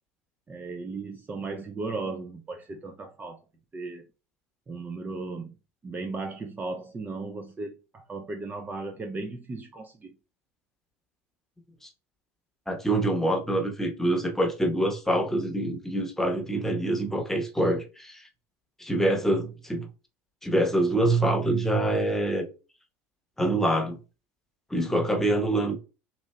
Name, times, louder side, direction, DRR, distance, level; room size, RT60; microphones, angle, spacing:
voice 1, 0.5-3.4 3.7-4.1 4.7-5.5 5.8-10.1, right 3 dB, 20° right, 0.4 m, -36 dB
voice 2, 12.7-18.3 18.8-19.9 20.4-22.4 23.4-24.0 24.7-25.8, right 1 dB, 5° left, 0.9 m, -25 dB
4.1 x 2.7 x 2.2 m
hypercardioid pair, 85°, 7 cm